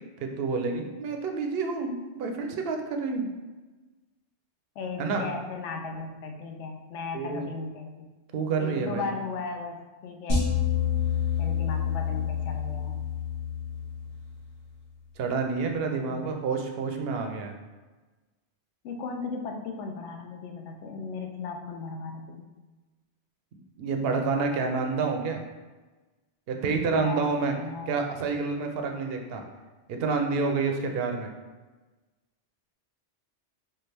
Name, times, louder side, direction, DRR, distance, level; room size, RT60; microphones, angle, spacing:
voice 1, 0.2-3.3 5.0-5.2 7.1-7.5 8.3-9.1 15.2-17.5 23.8-25.4 26.5-27.5 27.9-29.4 29.9-31.3, right 4 dB, 65° right, 4 dB, 0.7 m, -28 dB
voice 2, 4.8-8.1 8.6-10.5 11.4-13.0 15.9-16.3 18.8-22.5 26.9-27.3 27.6-28.0, left 4 dB, 90° left, 3 dB, 0.9 m, -36 dB
sound 1, 10.3-14.6, left 7 dB, 55° left, 1.6 m, -28 dB
4.4 x 2.5 x 3.3 m, 1.2 s
omnidirectional pair, 1.2 m